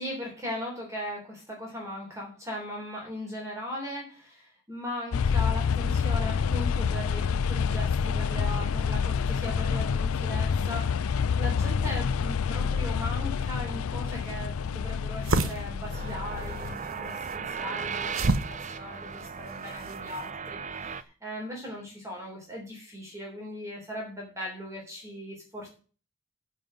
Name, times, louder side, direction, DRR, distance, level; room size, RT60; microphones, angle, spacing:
voice 1, 0.0-25.7, left 1 dB, 15° right, -1 dB, 3.4 m, -38 dB
sound 1, 5.1-16.8, left 6 dB, 85° left, 0.4 m, -28 dB
sound 2, 14.0-20.3, right 3 dB, 70° right, 1.0 m, -33 dB
sound 3, 15.9-21.0, right 6 dB, 35° right, 0.6 m, -36 dB
12.0 x 5.5 x 7.6 m, 0.38 s
head